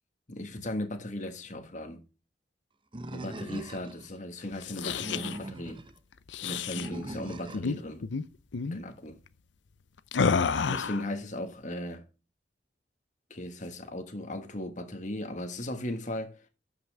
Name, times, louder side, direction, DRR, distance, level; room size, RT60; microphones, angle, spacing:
voice 1, 0.3-2.0 3.1-5.8 6.4-8.0 8.6-9.2 10.6-12.0 13.3-16.4, left 1 dB, 45° left, 1.5 m, -37 dB
Animal, 2.9-4.1 4.8-5.9 6.7-7.7, right 1 dB, 30° right, 0.9 m, -41 dB
sound 1, 4.5-5.4 6.3-6.9 7.5-8.2 8.5-8.8 10.1-11.1, left 5 dB, 85° left, 0.6 m, -29 dB
13.0 x 5.8 x 3.4 m
head